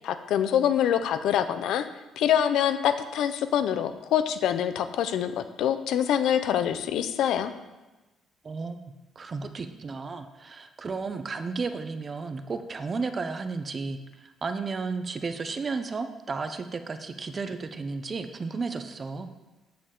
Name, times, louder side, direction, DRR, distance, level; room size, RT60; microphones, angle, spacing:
voice 1, 0.0-1.9 2.2-7.5, left 9 dB, 75° left, 11 dB, 0.6 m, -25 dB
voice 2, 8.4-8.8 9.2-19.3, right 4 dB, 30° right, 8 dB, 0.6 m, -33 dB
8.7 x 7.0 x 3.8 m, 1.1 s
cardioid pair, 125°, 0 cm